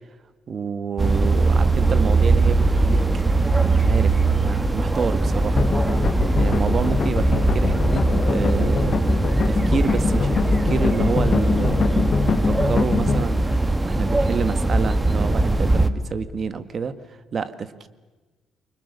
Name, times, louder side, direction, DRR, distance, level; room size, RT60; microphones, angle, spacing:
voice 1, 0.5-3.2 3.7-5.7 6.3-9.0 9.4-17.9, right 6 dB, 45° right, 13 dB, 1.7 m, -29 dB
sound 1, 1.0-15.9, right 2 dB, 15° right, 1.6 m, -20 dB
sound 2, 5.6-13.2, left 5 dB, 45° left, 1.3 m, -24 dB
29.0 x 24.5 x 6.8 m, 1.2 s
cardioid pair, 90°, 0 cm